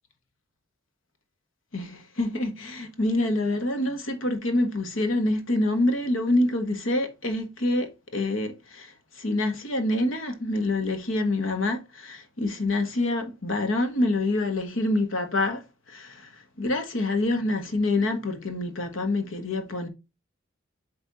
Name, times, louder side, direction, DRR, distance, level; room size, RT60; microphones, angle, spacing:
voice 1, 1.7-15.6 15.9-19.9, left 2 dB, 80° left, 1.4 m, -26 dB
8.4 x 3.4 x 4.0 m
head